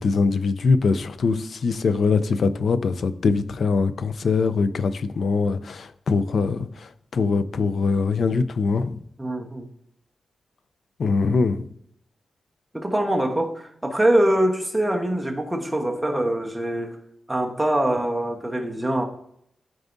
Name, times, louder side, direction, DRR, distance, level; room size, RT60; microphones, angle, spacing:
voice 1, 0.0-9.0 11.0-11.7, left 4 dB, 65° left, 0.5 m, -22 dB
voice 2, 9.2-9.7 12.7-17.0 17.3-19.0, right 1 dB, 10° right, 1.1 m, -23 dB
13.0 x 4.8 x 2.6 m
wide cardioid pair, 110°, 0 cm